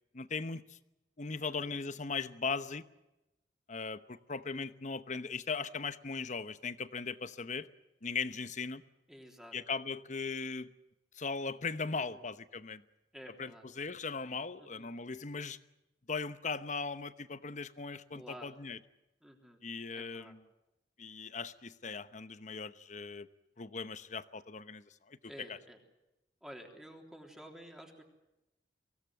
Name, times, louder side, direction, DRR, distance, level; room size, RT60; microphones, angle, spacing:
voice 1, 0.1-0.8 1.2-2.8 3.7-7.7 8.0-8.8 9.5-10.7 11.1-12.8 13.4-13.5 13.8-15.6 16.1-18.8 19.6-20.4 21.0-23.3 23.6-25.2 25.5-25.6, left 4 dB, 45° left, 13 dB, 0.9 m, -38 dB
voice 2, 1.3-1.7 9.1-9.5 11.9-12.2 13.1-13.7 14.6-14.9 18.1-18.5 19.2-19.6 19.9-20.4 25.3-25.8 26.4-28.0, equal, 5° right, 2 dB, 3.4 m, -51 dB
24.0 x 17.5 x 9.5 m, 0.96 s
head